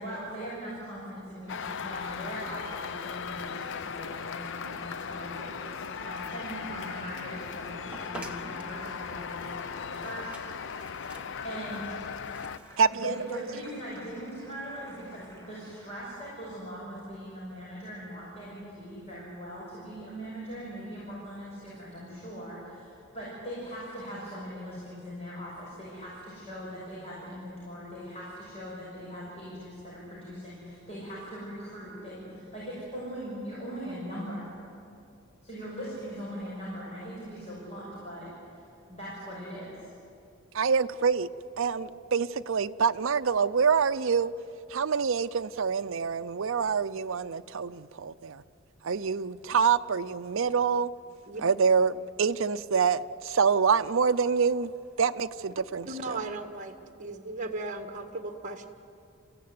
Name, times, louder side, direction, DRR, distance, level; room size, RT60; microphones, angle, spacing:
voice 1, 0.0-10.9 11.4-11.9 12.9-34.5 35.4-38.3 38.5-38.6 38.9-39.9, equal, 30° left, 6.0 m, -40 dB
sound 1, 1.5-12.6, left 6 dB, 60° left, 0.6 m, -38 dB
Applause, 1.9-16.7, equal, 15° left, 3.0 m, -53 dB
sound 2, 7.9-12.9, right 1 dB, 5° right, 1.7 m, -48 dB
voice 2, 12.8-13.4 40.5-41.3 41.6-44.3 44.7-48.4 48.8-50.9 51.4-54.7 55.0-56.2, right 6 dB, 65° right, 0.5 m, -26 dB
voice 3, 55.9-56.7 57.0-58.7, right 2 dB, 35° right, 1.7 m, -36 dB
28.0 x 15.5 x 9.5 m
head